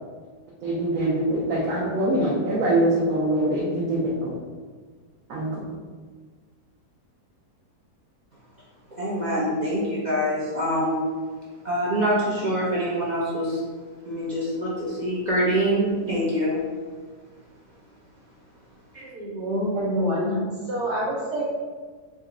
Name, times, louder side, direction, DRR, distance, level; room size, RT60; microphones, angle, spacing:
voice 1, 0.6-4.3 5.3-5.6, right 1 dB, 65° right, -5 dB, 1.0 m, -23 dB
voice 2, 9.0-11.0 11.6-13.6 14.1-16.6, equal, 50° right, -7 dB, 0.5 m, -25 dB
voice 3, 19.0-21.4, equal, 85° right, -7 dB, 1.5 m, -27 dB
3.9 x 2.2 x 3.7 m, 1.5 s
omnidirectional pair, 1.7 m